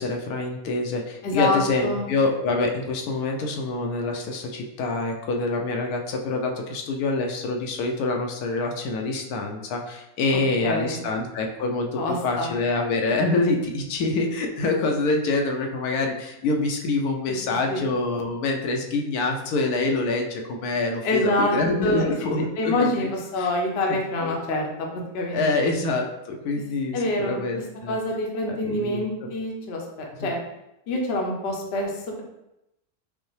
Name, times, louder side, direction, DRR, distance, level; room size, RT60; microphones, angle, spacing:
voice 1, 0.0-22.9 23.4-23.5 23.9-24.3 25.3-28.0 28.5-29.3 30.2-30.3, left 3 dB, 85° left, 2 dB, 1.1 m, -26 dB
voice 2, 1.2-2.1 10.3-11.0 12.0-12.5 17.3-17.4 17.7-17.9 21.0-22.0 22.6-25.7 26.9-30.4 30.9-32.2, left 1 dB, 55° left, 0 dB, 0.8 m, -26 dB
5.3 x 2.0 x 3.1 m, 0.89 s
omnidirectional pair, 1.6 m